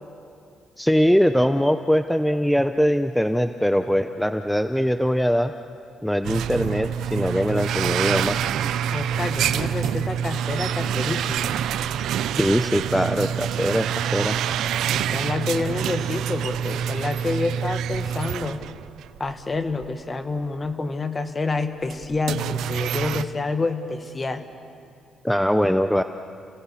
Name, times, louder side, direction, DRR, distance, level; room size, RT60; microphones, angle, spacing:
voice 1, 0.8-5.5 6.0-8.4 12.4-14.4 25.2-26.0, equal, ahead, 9 dB, 0.7 m, -21 dB
sound 1, 6.2-19.3 19.7-19.9 20.7-20.8 21.8-23.2, right 9 dB, 80° right, 0.6 m, -26 dB
voice 2, 8.9-11.5 14.9-18.6 19.2-24.5, left 3 dB, 30° left, 9 dB, 1.6 m, -28 dB
30.0 x 17.0 x 7.1 m, 2.4 s
cardioid pair, 90°, 0 cm